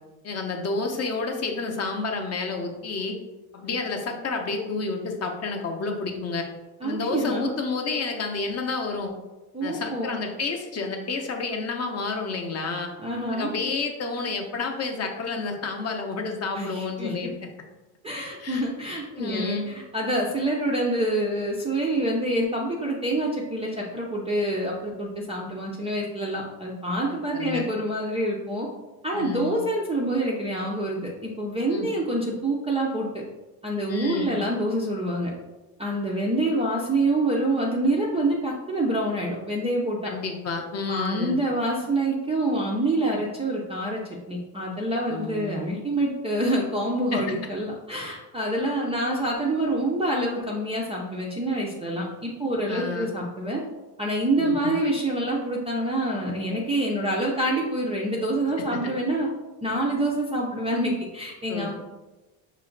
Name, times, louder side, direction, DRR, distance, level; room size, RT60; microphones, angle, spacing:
voice 1, 0.2-3.2 3.5-6.5 6.8-9.1 9.6-12.9 13.3-17.5 18.4-18.6 19.1-19.7 27.1-27.7 29.1-29.6 31.7-31.9 33.9-34.4 40.0-41.4 45.1-45.6 47.1-47.3 52.7-53.1 54.4-54.8 58.6-58.9 61.5-61.7, left 4 dB, 35° left, 3 dB, 0.6 m, -30 dB
voice 2, 6.8-7.5 9.5-10.2 13.0-13.5 16.5-17.2 18.0-28.7 29.0-33.2 33.6-35.3 35.8-40.1 40.9-44.0 44.3-53.6 54.0-59.3 59.6-61.7, right 1 dB, 15° right, -3 dB, 0.3 m, -26 dB
5.7 x 2.1 x 3.8 m, 1.1 s
cardioid pair, 135°, 45 cm